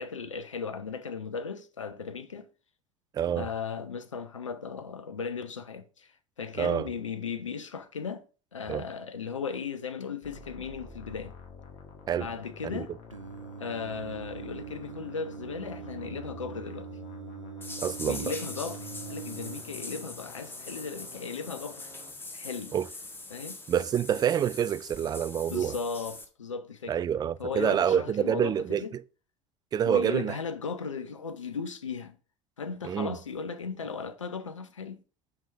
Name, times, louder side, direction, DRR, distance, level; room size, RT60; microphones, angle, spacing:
voice 1, 0.0-2.5 3.4-6.1 6.4-8.3 8.5-11.4 12.2-12.9 13.6-16.9 18.0-21.9 22.3-22.7 23.3-23.6 25.5-27.0 27.4-28.9 29.9-32.2 32.6-35.0, left 5 dB, 80° left, 0.6 m, -36 dB
voice 2, 3.1-3.5 6.6-6.9 8.7-8.8 12.1-12.3 12.7-12.9 17.8-18.3 22.7-22.9 23.7-25.8 26.9-29.0 29.7-30.4 32.8-33.1, right 9 dB, 25° right, 0.4 m, -27 dB
sound 1, 10.2-22.1, left 4 dB, 50° left, 2.0 m, -49 dB
Singing, 13.1-19.6, right 8 dB, 90° right, 0.5 m, -43 dB
sound 2, 17.6-26.2, left 2 dB, 15° left, 1.4 m, -43 dB
6.0 x 5.9 x 3.2 m
figure-of-eight pair, 65°, 16 cm